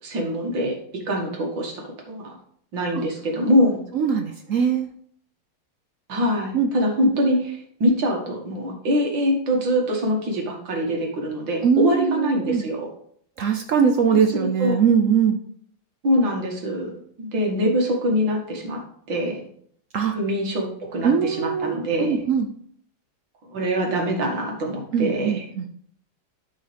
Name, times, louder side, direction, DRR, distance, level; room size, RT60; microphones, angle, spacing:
voice 1, 0.0-2.3 2.7-3.8 6.1-12.9 14.1-14.2 14.6-14.8 16.0-16.9 17.2-18.8 19.1-19.4 20.1-22.2 23.5-25.4, equal, 70° right, 1 dB, 2.4 m, -24 dB
voice 2, 3.9-4.9 6.5-6.7 7.0-7.1 11.6-12.6 13.4-15.4 19.9-20.2 21.0-22.5 24.9-25.7, right 7 dB, 90° right, 4 dB, 0.7 m, -21 dB
12.5 x 4.7 x 3.4 m, 0.62 s
omnidirectional pair, 2.2 m